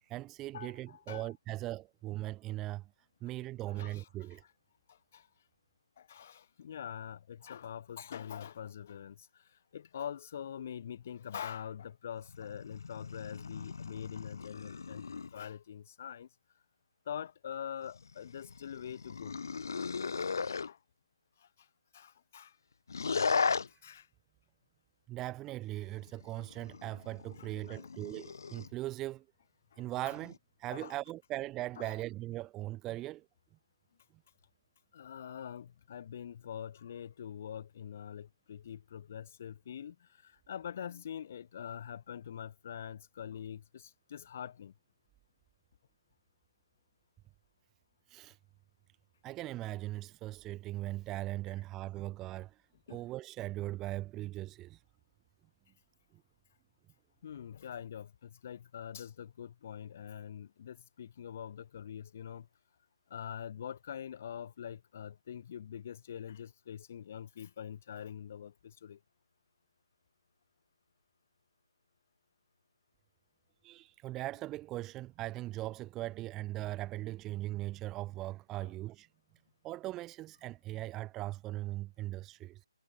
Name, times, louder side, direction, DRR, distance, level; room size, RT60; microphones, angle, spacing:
voice 1, 0.0-2.9 3.2-4.4 25.1-29.2 29.8-30.3 30.6-33.2 48.1-48.4 49.2-52.6 52.9-54.8 73.6-79.1 79.6-82.7, right 16 dB, 5° right, 1.6 m, -39 dB
voice 2, 0.5-1.3 3.7-4.1 4.9-5.3 6.0-16.3 17.0-19.4 20.2-20.3 20.7-20.8 21.4-21.7 21.9-22.6 23.7-24.1 27.4-27.8 29.7-30.1 30.7-30.9 31.8-31.9 34.9-44.7 52.9-53.0 57.2-62.5 63.1-69.0 78.6-78.7, left 9 dB, 25° left, 4.6 m, -44 dB
sound 1, 12.2-15.4 17.8-20.7 22.9-23.7 25.7-28.7 29.9-30.4, left 5 dB, 40° left, 3.9 m, -37 dB
hypercardioid pair, 180°, 3 cm